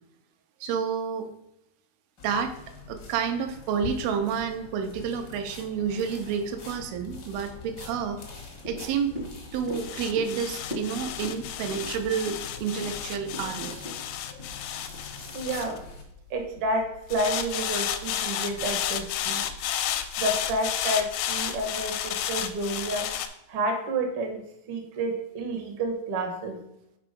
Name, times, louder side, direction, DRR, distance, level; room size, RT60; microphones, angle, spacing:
voice 1, 0.6-1.3 2.2-2.6 2.9-8.2 8.7-9.2 9.5-13.8, right 7 dB, 85° right, 6 dB, 2.5 m, -29 dB
sound 1, 2.2-16.0, left 4 dB, 65° left, 1.0 m, -45 dB
sound 2, 7.0-16.4 17.1-23.3, left 10 dB, 85° left, 2.4 m, -32 dB
sound 3, 8.6-15.1 15.5-15.6, left 1 dB, 40° right, 0.9 m, -41 dB
voice 2, 15.3-15.8 16.3-19.5 20.2-23.1 23.5-24.4 24.7-26.6, right 1 dB, 65° right, 3 dB, 1.4 m, -30 dB
5.9 x 4.6 x 5.1 m, 0.83 s
omnidirectional pair, 4.3 m